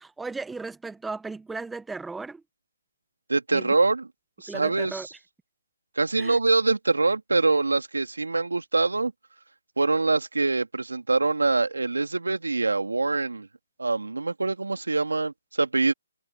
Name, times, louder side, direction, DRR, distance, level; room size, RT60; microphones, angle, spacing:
voice 1, 0.0-2.4 3.5-3.7 4.5-5.1 6.2-6.4, right 3 dB, 5° right, 1.0 m, -36 dB
voice 2, 3.3-4.1 4.4-5.0 6.0-9.1 9.8-13.5 13.8-15.9, right 3 dB, 85° right, 2.6 m, -24 dB
figure-of-eight pair, 150°, 0 cm